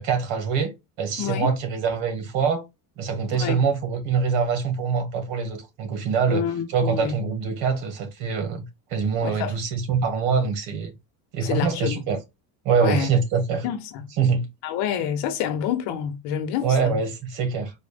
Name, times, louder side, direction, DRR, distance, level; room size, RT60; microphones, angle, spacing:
voice 1, 0.0-2.6 3.0-8.6 8.9-10.9 11.3-12.2 12.7-13.6 14.2-14.5 16.6-17.7, right 5 dB, 75° right, 1.8 m, -24 dB
voice 2, 1.2-1.5 3.3-3.6 6.3-7.1 9.2-9.5 11.4-12.0 12.8-13.1 13.6-14.0 14.6-17.0, left 9 dB, 70° left, 1.2 m, -28 dB
4.6 x 2.6 x 3.5 m
cardioid pair, 135°, 43 cm